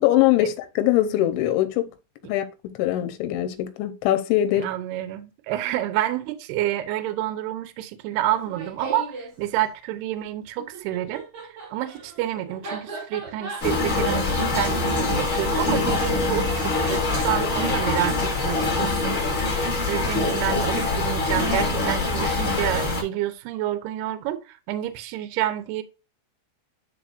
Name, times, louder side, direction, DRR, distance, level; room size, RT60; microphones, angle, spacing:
voice 1, 0.0-1.9 2.2-2.5 2.8-4.7, left 13 dB, 90° left, 3.3 m, -22 dB
voice 2, 4.5-11.2 11.7-19.2 19.9-25.8, right 13 dB, 75° right, 2.6 m, -28 dB
Laughter, 8.3-9.3 10.6-17.9, right 3 dB, 45° right, 1.4 m, -38 dB
sound 1, 13.6-23.0, left 3 dB, 20° left, 2.6 m, -24 dB
11.0 x 4.3 x 2.6 m
omnidirectional pair, 5.2 m